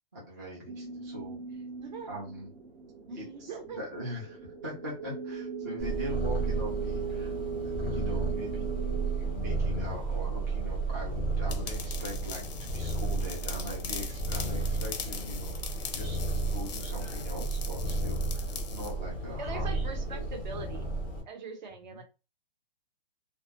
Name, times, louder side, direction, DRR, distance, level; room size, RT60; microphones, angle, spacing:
voice 1, 0.1-1.6 2.1-2.5 3.1-7.3 7.6-8.7 9.1-15.6 15.9-16.2 16.5-20.4 21.8-22.0, equal, 20° right, -5 dB, 0.4 m, -42 dB
sound 1, 0.7-10.4, right 6 dB, 80° right, 0.9 m, -39 dB
voice 2, 3.1-3.8 19.4-20.9 21.3-22.0, right 4 dB, 50° right, 5 dB, 0.7 m, -41 dB
Purr, 5.8-21.2, right 2 dB, 5° left, 0.7 m, -33 dB
sound 2, 11.5-18.9, left 6 dB, 45° left, 0.4 m, -41 dB
2.2 x 2.1 x 2.7 m, 0.30 s
hypercardioid pair, 170°, 30 cm